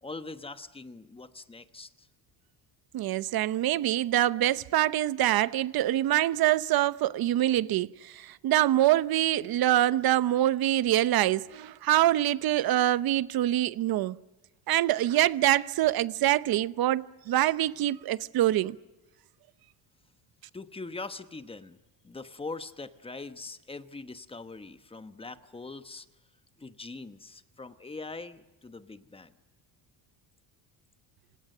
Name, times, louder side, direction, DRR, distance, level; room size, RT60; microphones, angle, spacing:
voice 1, 0.0-2.1 20.5-26.1 26.6-29.3, left 3 dB, 10° left, 1.1 m, -42 dB
voice 2, 2.9-14.2 14.7-18.8, right 13 dB, 55° right, 0.9 m, -25 dB
27.0 x 26.5 x 6.7 m
cardioid pair, 145°, 45 cm